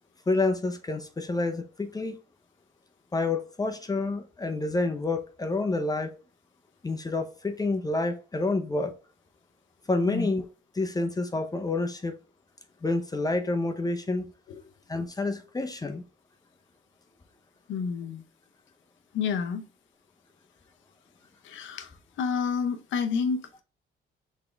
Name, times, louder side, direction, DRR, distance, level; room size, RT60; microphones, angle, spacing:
voice 1, 0.3-2.2 3.1-6.1 6.8-8.9 9.9-10.5 10.7-12.1 12.8-14.3 14.9-16.0, left 2 dB, 20° left, 0.6 m, -28 dB
voice 2, 17.7-18.2 19.1-19.6 21.4-21.9 22.2-23.6, left 6 dB, 75° left, 0.7 m, -29 dB
4.1 x 3.6 x 3.3 m
cardioid pair, 90°, 20 cm